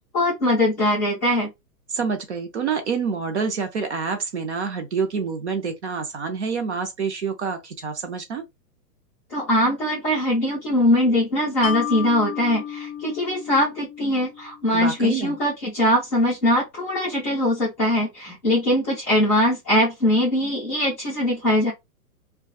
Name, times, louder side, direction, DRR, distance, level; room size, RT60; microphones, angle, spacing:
voice 1, 0.1-1.5 9.3-21.7, left 1 dB, 10° left, 0.5 m, -21 dB
voice 2, 1.9-8.4 14.7-15.4, right 5 dB, 45° right, 0.5 m, -27 dB
Mallet percussion, 11.6-14.9, left 10 dB, 55° left, 0.6 m, -33 dB
2.6 x 2.3 x 2.2 m
hypercardioid pair, 160°, 48 cm